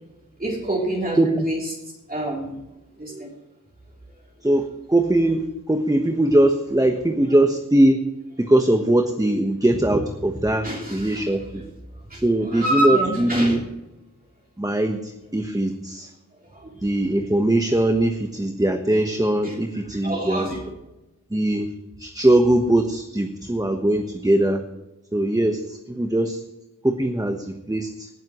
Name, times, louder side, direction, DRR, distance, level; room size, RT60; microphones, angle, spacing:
voice 1, 0.4-1.2 1.4-1.6 2.1-2.5 3.0-3.3 10.6-11.2 12.1-13.6 16.5-16.7 19.4-19.6 20.0-20.6, right 1 dB, 25° right, -3 dB, 3.5 m, -26 dB
voice 2, 4.4-8.0 8.4-11.6 12.2-13.6 14.6-16.1 16.8-20.5 21.3-21.7 22.0-24.6 25.1-26.4 26.8-28.1, right 1 dB, 10° right, 5 dB, 1.2 m, -21 dB
19.0 x 10.5 x 3.1 m, 0.99 s
wide cardioid pair, 65°, 32 cm